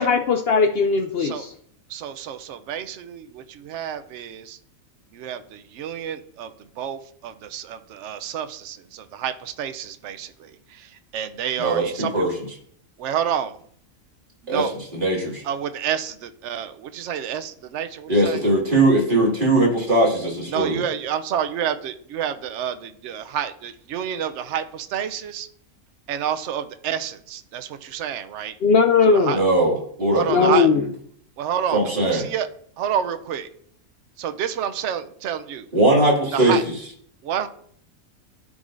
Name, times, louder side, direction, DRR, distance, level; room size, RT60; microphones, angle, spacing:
voice 1, 0.0-1.5 28.6-29.4 30.3-30.8, left 5 dB, 65° left, 7 dB, 0.6 m, -18 dB
voice 2, 1.9-4.6 5.1-12.3 13.0-13.6 14.4-14.8 15.4-18.4 20.5-25.5 26.1-28.5 29.1-29.4 30.1-30.7 31.4-32.5 32.8-33.5 34.2-35.7 36.3-36.6 37.2-37.5, right 9 dB, 65° right, 10 dB, 0.8 m, -29 dB
voice 3, 14.5-15.4 18.1-20.8 29.3-30.9 31.7-32.2 35.7-36.6, right 2 dB, 35° right, -3 dB, 2.4 m, -20 dB
13.5 x 4.9 x 2.6 m, 0.63 s
omnidirectional pair, 1.4 m